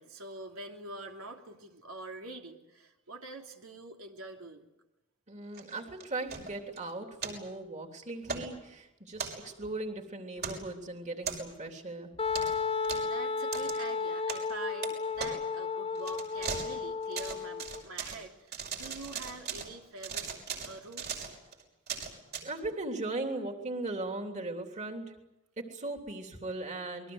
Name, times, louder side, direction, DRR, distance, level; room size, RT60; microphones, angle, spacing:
voice 1, 0.0-4.7 13.0-20.3 20.6-21.3, right 2 dB, 85° right, 2 dB, 3.0 m, -45 dB
voice 2, 5.3-12.1 22.4-25.1 25.6-27.1, right 2 dB, 35° right, 4 dB, 3.3 m, -38 dB
sound 1, 5.5-6.8 7.2-7.4 8.2-8.5 9.1-9.7 10.4-10.7 11.2-11.7 12.3-12.6 12.8-13.1 13.5-13.7 14.3-14.5 14.8-14.9 15.2-15.3 15.9-16.7 17.0-18.2 18.5-19.7 20.0-22.4, right 6 dB, 50° right, 6.0 m, -38 dB
Wind instrument woodwind instrument, 12.2-17.8, left 4 dB, 25° left, 0.9 m, -33 dB
28.0 x 21.5 x 8.1 m, 0.90 s
head